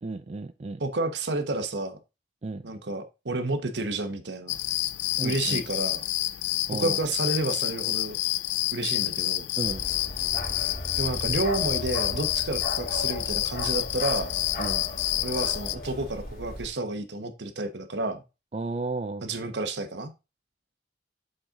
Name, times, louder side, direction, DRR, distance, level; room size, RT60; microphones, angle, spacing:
voice 1, 0.0-0.8 2.4-2.6 5.2-5.6 6.7-7.0 9.6-9.9 14.6-14.8 18.5-19.3, right 3 dB, 35° right, 0.4 m, -33 dB
voice 2, 0.8-2.0 2.6-4.6 5.2-6.0 6.7-8.2 8.7-9.5 11.0-14.3 15.2-18.2 19.2-20.1, right 2 dB, 80° right, 1.1 m, -30 dB
sound 1, 4.5-15.8, left 16 dB, 85° left, 0.4 m, -29 dB
Bark, 9.6-16.7, left 1 dB, 50° left, 3.8 m, -36 dB
7.7 x 4.3 x 3.7 m
head